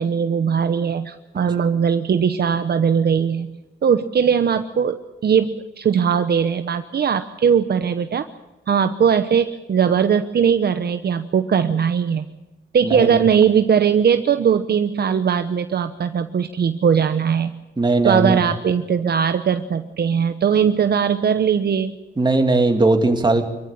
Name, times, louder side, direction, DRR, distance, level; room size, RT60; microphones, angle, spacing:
voice 1, 0.0-8.3 8.7-12.3 12.7-17.5 18.0-22.0, right 7 dB, 60° right, 9 dB, 0.9 m, -19 dB
voice 2, 12.8-13.2 17.8-18.4 22.2-23.4, right 2 dB, 25° right, 5 dB, 2.8 m, -18 dB
25.0 x 14.5 x 8.8 m, 1.1 s
cardioid pair, 100°, 19 cm